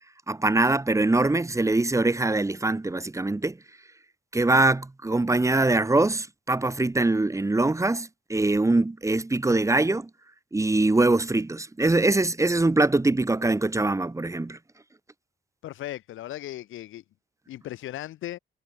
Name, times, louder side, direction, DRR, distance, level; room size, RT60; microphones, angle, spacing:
voice 1, 0.3-3.6 4.3-10.1 10.5-14.6, right 2 dB, 15° right, 2.0 m, -23 dB
voice 2, 15.6-17.0 17.5-18.4, left 14 dB, 85° left, 6.0 m, -37 dB
cardioid pair, 90°, 20 cm